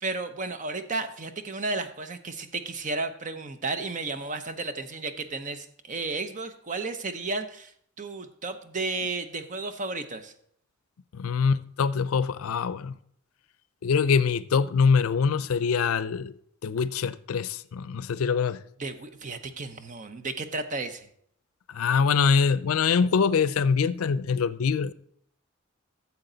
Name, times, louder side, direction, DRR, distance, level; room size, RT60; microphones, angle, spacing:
voice 1, 0.0-10.3 18.8-21.1, right 3 dB, 35° right, 0.7 m, -33 dB
voice 2, 11.1-12.9 13.8-18.6 21.7-24.9, left 5 dB, 85° left, 0.4 m, -24 dB
13.0 x 7.2 x 3.9 m
head